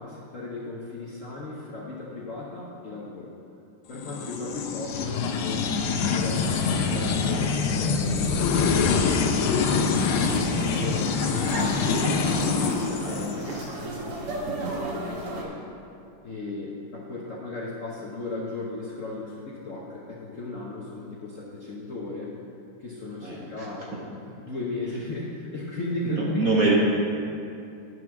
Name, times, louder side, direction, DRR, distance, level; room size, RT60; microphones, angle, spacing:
voice 1, 0.0-3.3 3.9-9.7 10.1-12.3 12.7-14.5 14.9-15.6 16.2-22.3 22.8-26.2, left 2 dB, 50° left, -5 dB, 1.0 m, -36 dB
sound 1, 4.0-13.7, left 5 dB, 80° left, 1.5 m, -25 dB
sound 2, 9.9-15.4, right 2 dB, 90° right, 2.2 m, -34 dB
voice 2, 14.5-14.8 23.2-23.7 26.0-26.7, right 3 dB, 50° right, -4 dB, 1.3 m, -25 dB
10.5 x 4.7 x 6.0 m, 2.6 s
omnidirectional pair, 2.4 m